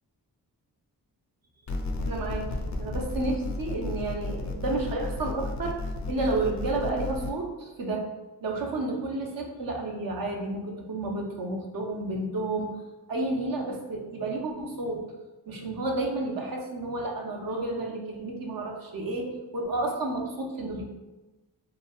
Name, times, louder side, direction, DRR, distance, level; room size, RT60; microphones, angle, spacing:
sound 1, 1.7-7.3, left 2 dB, 45° left, 0.4 m, -33 dB
voice 1, 2.0-5.8 6.1-8.1 8.4-12.8 13.1-15.0 15.5-20.8, right 2 dB, 60° right, 1 dB, 0.6 m, -31 dB
3.2 x 2.2 x 2.3 m, 1.1 s
cardioid pair, 65°, 40 cm